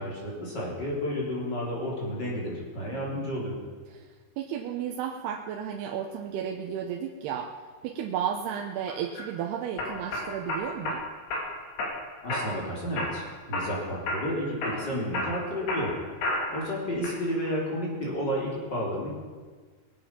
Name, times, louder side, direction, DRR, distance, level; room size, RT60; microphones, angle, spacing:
voice 1, 0.0-3.6 12.2-15.9 16.5-19.1, equal, 25° left, -4 dB, 3.7 m, -31 dB
voice 2, 4.4-7.5 7.8-11.0, right 8 dB, 85° right, 1 dB, 2.9 m, -33 dB
sound 1, 8.9-9.3 9.8-11.0 11.3-11.9 12.3-12.7 13.0-13.8 14.1-14.3 14.6-16.6 17.0-17.6, left 2 dB, 80° left, 4.8 m, -31 dB
22.5 x 8.3 x 5.9 m, 1.5 s
omnidirectional pair, 4.6 m